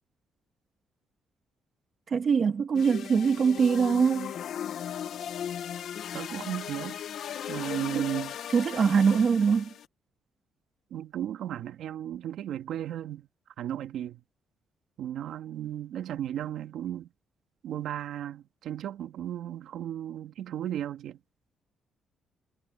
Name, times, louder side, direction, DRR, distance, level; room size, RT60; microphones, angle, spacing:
voice 1, 2.1-4.3 7.9-8.0 8.5-9.7, right 6 dB, 50° right, 1.8 m, -23 dB
sound 1, 2.7-9.9, left 9 dB, 70° left, 0.9 m, -37 dB
voice 2, 6.1-7.0 7.5-8.4 10.9-13.3 13.6-14.2 15.0-17.1 17.6-21.2, right 11 dB, 75° right, 2.2 m, -35 dB
cardioid pair, 90°, 0 cm